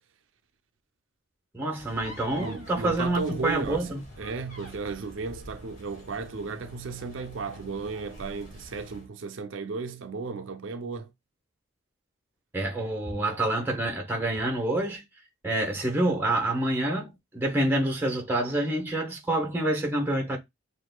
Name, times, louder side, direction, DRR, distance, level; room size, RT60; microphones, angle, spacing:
voice 1, 1.5-4.0 12.5-15.0 15.4-20.4, right 1 dB, 10° right, 1.1 m, -27 dB
sound 1, 1.8-9.1, equal, 40° left, 2.0 m, -46 dB
voice 2, 2.4-11.1, right 4 dB, 70° right, 0.5 m, -35 dB
6.1 x 2.6 x 2.2 m
head